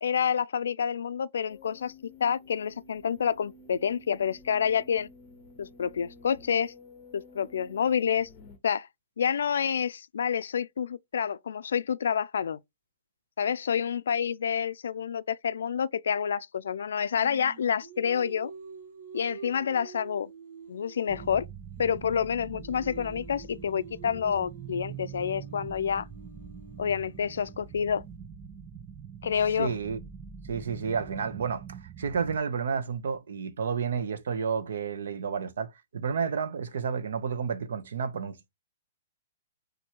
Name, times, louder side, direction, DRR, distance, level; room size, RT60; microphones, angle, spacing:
voice 1, 0.0-1.9 2.2-5.1 5.6-6.7 7.1-8.3 8.6-8.9 9.2-12.6 13.4-18.5 19.1-20.3 20.7-21.4 21.8-26.1 26.8-28.0 29.2-29.7, left 7 dB, 90° left, 0.3 m, -28 dB
sound 1, 1.5-8.6, left 2 dB, 20° left, 0.7 m, -52 dB
Singing, 17.2-21.5 21.8-27.8, right 5 dB, 55° right, 1.5 m, -48 dB
sound 2, 21.1-32.4, right 7 dB, 10° right, 0.3 m, -44 dB
voice 2, 29.6-30.0 30.5-38.5, right 6 dB, 80° right, 0.8 m, -31 dB
4.4 x 2.6 x 4.4 m
hypercardioid pair, 175°, 0 cm